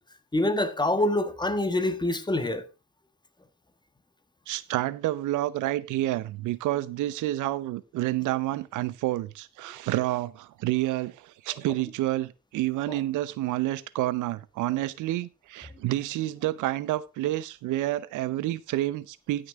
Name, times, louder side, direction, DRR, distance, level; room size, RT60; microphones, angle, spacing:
voice 1, 0.3-2.7 12.9-13.0, left 1 dB, 15° left, 1.6 m, -26 dB
voice 2, 4.5-19.5, right 15 dB, 90° right, 0.7 m, -29 dB
14.5 x 6.6 x 3.6 m
cardioid pair, 90°, 30 cm